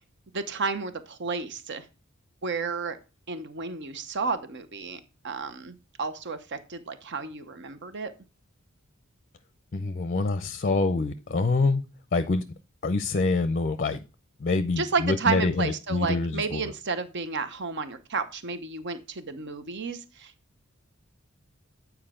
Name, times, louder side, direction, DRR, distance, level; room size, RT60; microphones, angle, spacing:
voice 1, 0.3-1.8 2.4-3.0 3.3-8.1 14.8-20.3, right 4 dB, 60° right, 11 dB, 0.9 m, -32 dB
voice 2, 9.7-11.8 12.1-12.4 12.8-14.0 14.4-16.7, left 3 dB, 40° left, 12 dB, 0.5 m, -26 dB
8.8 x 4.6 x 3.7 m, 0.31 s
head